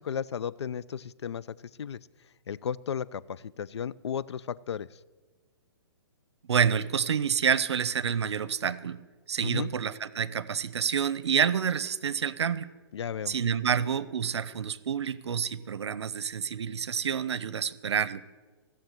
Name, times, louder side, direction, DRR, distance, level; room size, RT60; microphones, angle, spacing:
voice 1, 0.0-2.0 2.5-5.0 9.4-9.7 12.9-13.4, left 8 dB, 85° left, 19 dB, 0.6 m, -34 dB
voice 2, 6.5-9.0 9.3-12.7 13.3-18.2, right 7 dB, 85° right, 17 dB, 0.8 m, -28 dB
16.0 x 7.2 x 9.2 m, 1.3 s
hypercardioid pair, 160°, 14 cm